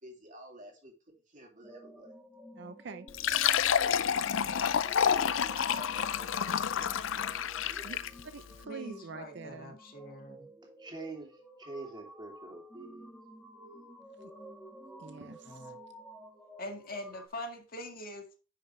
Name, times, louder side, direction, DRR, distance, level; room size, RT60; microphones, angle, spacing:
voice 1, 0.0-2.1 4.1-4.4 4.8-8.1, right 1 dB, 40° right, 0 dB, 2.8 m, -53 dB
sound 1, 1.6-17.3, right 1 dB, 5° right, 1.4 m, -51 dB
voice 2, 2.6-3.1 7.8-8.0 8.3-9.8 14.2-14.3 15.0-15.7, right 4 dB, 60° right, 11 dB, 0.6 m, -45 dB
Fill (with liquid), 3.1-8.2, left 8 dB, 85° left, 0.5 m, -29 dB
voice 3, 8.6-10.5 15.5-15.8 16.6-18.3, left 1 dB, 50° left, 4 dB, 1.9 m, -43 dB
voice 4, 10.6-13.1, right 3 dB, 25° right, 1 dB, 2.9 m, -45 dB
9.9 x 6.5 x 3.2 m, 0.34 s
head